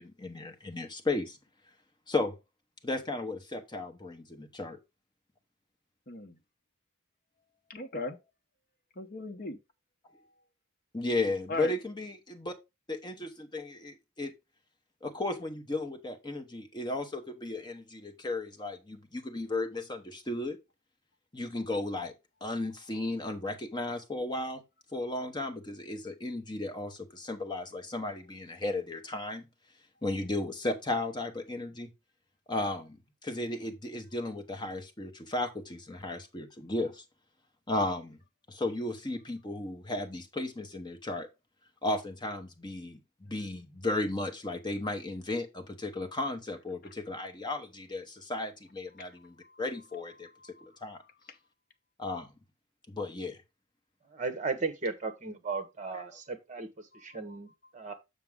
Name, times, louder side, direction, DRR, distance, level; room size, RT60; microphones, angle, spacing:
voice 1, 0.0-1.4 2.1-2.3 2.8-4.8 10.9-12.5 12.9-14.3 15.0-20.6 21.3-22.1 22.4-24.6 24.9-29.5 30.0-31.9 32.5-33.0 33.2-37.0 37.7-38.2 38.5-41.3 41.8-51.0 52.0-52.3 52.9-53.4 55.9-56.0, left 2 dB, 20° left, 1.0 m, -35 dB
voice 2, 6.1-6.4 7.7-8.2 9.0-9.6 11.5-11.7 49.0-49.1 49.4-49.6 50.4-51.1 56.9-57.0, left 2 dB, 40° left, 0.9 m, -39 dB
voice 3, 54.1-57.9, right 4 dB, 35° right, 1.2 m, -36 dB
6.7 x 6.0 x 3.6 m
head